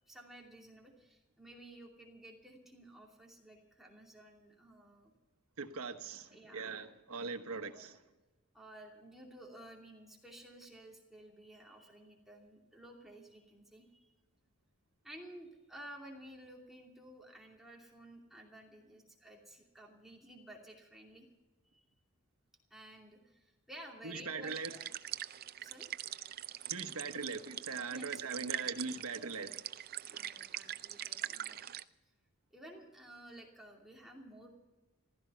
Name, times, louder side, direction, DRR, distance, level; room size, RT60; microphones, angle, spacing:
voice 1, 0.1-5.1 6.3-6.8 8.5-14.1 15.0-21.3 21.7-21.8 22.7-24.8 25.6-25.9 27.9-28.2 29.2-29.5 30.0-31.6 32.5-34.5, right 1 dB, ahead, 2.7 m, -54 dB
voice 2, 5.6-8.0 24.0-24.8 26.7-29.5, right 4 dB, 90° right, 1.2 m, -41 dB
sound 1, 24.4-31.8, right 12 dB, 45° right, 0.4 m, -43 dB
15.0 x 13.5 x 5.6 m
head